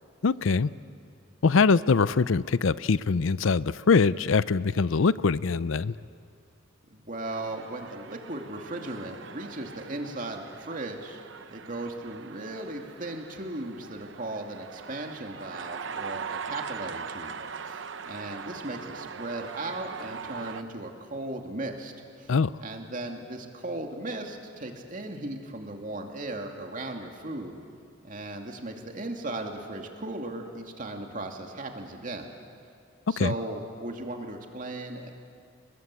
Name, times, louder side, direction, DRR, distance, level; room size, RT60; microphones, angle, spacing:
voice 1, 0.2-0.7 1.4-6.0 22.3-22.5 33.2-33.3, left 4 dB, 70° left, 17 dB, 0.5 m, -23 dB
voice 2, 6.8-11.2 11.5-21.9 22.2-22.3 22.6-27.6 28.0-32.3 33.1-35.1, right 2 dB, 40° right, 3 dB, 2.6 m, -37 dB
sound 1, 7.3-20.6, right 5 dB, 60° right, 0.8 m, -41 dB
30.0 x 20.5 x 8.5 m, 2.4 s
head